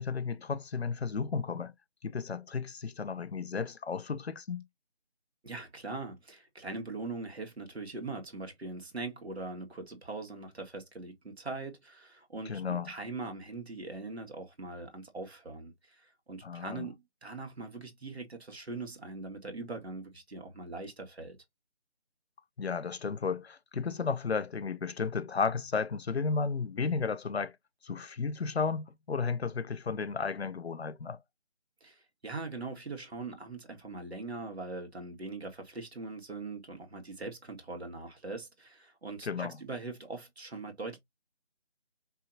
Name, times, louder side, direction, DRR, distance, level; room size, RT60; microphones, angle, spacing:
voice 1, 0.0-1.7 2.0-4.6 12.5-12.9 16.4-16.9 22.6-27.6 27.8-31.2 39.2-39.6, left 5 dB, 75° left, 0.7 m, -33 dB
voice 2, 5.4-16.9 17.2-21.4 31.8-41.0, right 3 dB, 75° right, 1.9 m, -41 dB
5.6 x 2.8 x 2.7 m
figure-of-eight pair, 170°, 32 cm